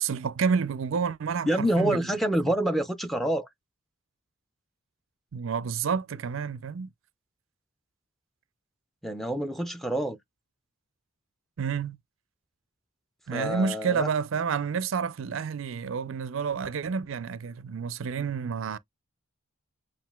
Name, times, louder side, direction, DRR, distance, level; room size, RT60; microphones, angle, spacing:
voice 1, 0.0-2.1 5.3-6.9 11.6-12.0 13.3-18.8, right 6 dB, 70° right, 0.4 m, -29 dB
voice 2, 1.5-3.5 9.0-10.2 13.3-14.1, right 1 dB, ahead, 0.5 m, -27 dB
7.4 x 2.5 x 2.3 m
head